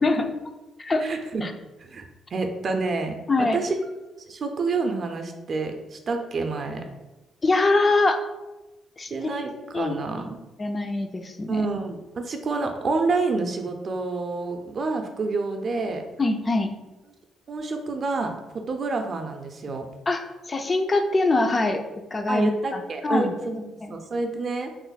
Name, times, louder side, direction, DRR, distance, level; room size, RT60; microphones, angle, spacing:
voice 1, 0.0-0.3 0.8-1.1 1.4-1.5 3.3-3.6 7.4-8.2 9.0-9.3 9.7-9.9 10.6-11.7 16.2-16.7 20.1-21.8 22.1-23.5 23.8-23.9, left 2 dB, 30° left, 6 dB, 0.3 m, -23 dB
voice 2, 1.0-1.4 1.8-2.0 2.3-3.1 3.5-3.8 4.3-6.9 9.1-10.4 11.5-16.0 17.5-19.9 22.3-23.6 23.9-24.7, right 3 dB, 45° right, 5 dB, 0.4 m, -28 dB
3.0 x 2.1 x 3.9 m, 1.1 s
cardioid pair, 90°, 0 cm